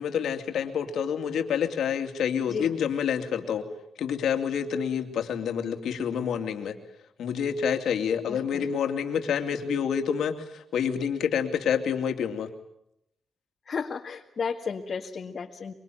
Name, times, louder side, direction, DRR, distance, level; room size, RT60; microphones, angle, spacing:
voice 1, 0.0-3.7 4.0-6.8 7.2-12.5, left 7 dB, 85° left, 6 dB, 2.6 m, -28 dB
voice 2, 8.3-8.6 13.7-15.7, left 6 dB, 50° left, 1 dB, 1.9 m, -33 dB
24.5 x 24.0 x 9.2 m, 0.76 s
cardioid pair, 100°, 0 cm